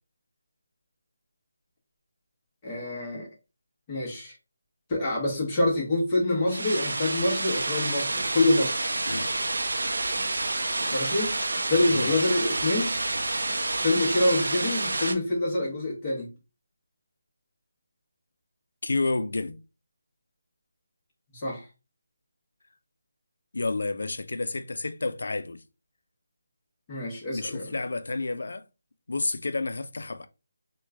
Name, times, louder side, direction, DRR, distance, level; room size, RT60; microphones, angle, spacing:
voice 1, 2.6-3.3 3.9-4.3 4.9-8.8 10.9-11.3 11.7-13.0 13.8-16.3 21.3-21.7 26.9-27.7, left 2 dB, 15° left, 1.0 m, -26 dB
sound 1, 6.5-15.1, right 2 dB, 75° right, 0.6 m, -29 dB
voice 2, 18.8-19.6 23.5-25.6 27.3-28.6 29.1-30.3, left 3 dB, 70° left, 0.4 m, -30 dB
3.0 x 2.2 x 3.4 m
hypercardioid pair, 175°, 0 cm